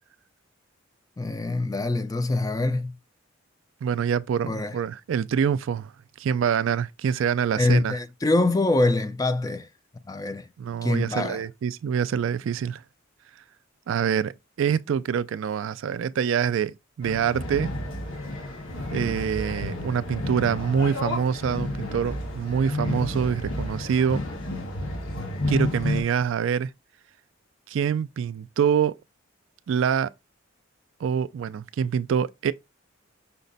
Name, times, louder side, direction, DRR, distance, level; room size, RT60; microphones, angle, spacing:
voice 1, 1.2-3.0 4.5-4.8 7.6-9.7 10.1-10.5 10.8-11.4, left 2 dB, 15° left, 0.3 m, -24 dB
voice 2, 3.8-5.9 6.2-7.9 10.6-12.8 13.9-17.7 18.9-24.2 25.5-26.7 27.7-28.9 29.7-30.1 31.0-32.5, right 7 dB, 70° right, 0.3 m, -25 dB
sound 1, 17.0-26.0, left 1 dB, 80° left, 1.5 m, -31 dB
5.6 x 2.2 x 3.9 m
head